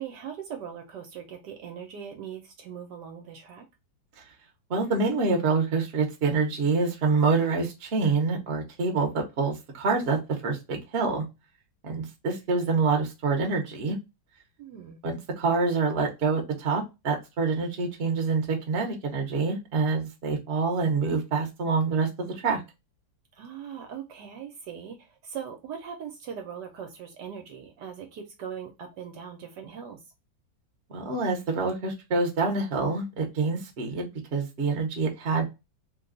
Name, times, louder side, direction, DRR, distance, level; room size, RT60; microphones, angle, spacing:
voice 1, 0.0-3.6 14.6-15.0 23.4-25.0 25.2-30.0, right 8 dB, 70° right, 1.1 m, -40 dB
voice 2, 4.7-11.2 11.8-14.0 15.0-22.6 30.9-35.4, right 4 dB, 45° right, 0.8 m, -26 dB
3.3 x 2.3 x 3.7 m
omnidirectional pair, 2.1 m